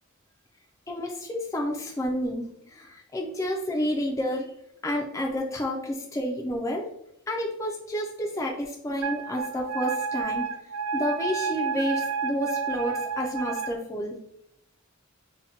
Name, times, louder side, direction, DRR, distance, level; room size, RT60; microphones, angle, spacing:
voice 1, 0.9-4.5 4.8-6.9 7.3-10.5 10.9-14.1, equal, 15° left, -1 dB, 0.3 m, -30 dB
Wind instrument woodwind instrument, 9.0-13.7, right 5 dB, 75° right, 0.4 m, -30 dB
2.7 x 2.1 x 4.0 m, 0.78 s
head